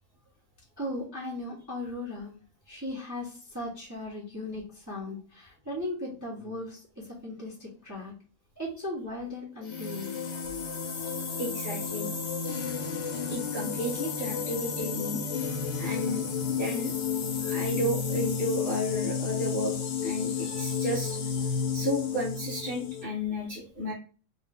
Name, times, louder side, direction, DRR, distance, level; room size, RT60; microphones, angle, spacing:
voice 1, 0.8-2.3 2.7-8.1 8.6-10.1, left 1 dB, 15° right, -5 dB, 0.7 m, -37 dB
sound 1, 9.6-23.0, left 6 dB, 65° left, 1.3 m, -32 dB
voice 2, 11.0-12.1 13.3-15.2 15.8-16.9 17.4-19.7 20.0-23.9, equal, 40° left, -7 dB, 0.8 m, -33 dB
3.3 x 2.8 x 3.4 m, 0.38 s
omnidirectional pair, 2.3 m